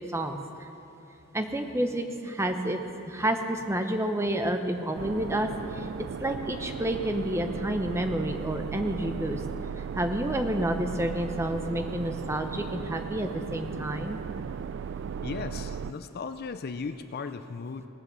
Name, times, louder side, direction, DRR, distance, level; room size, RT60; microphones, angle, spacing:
voice 1, 1.3-5.9 6.2-9.4 10.0-14.2, right 1 dB, 10° right, 6 dB, 0.8 m, -29 dB
sound 1, 4.9-15.9, right 6 dB, 55° right, 0.3 m, -36 dB
voice 2, 15.2-17.9, left 4 dB, 45° left, 10 dB, 0.4 m, -36 dB
18.5 x 7.6 x 6.9 m, 2.8 s
head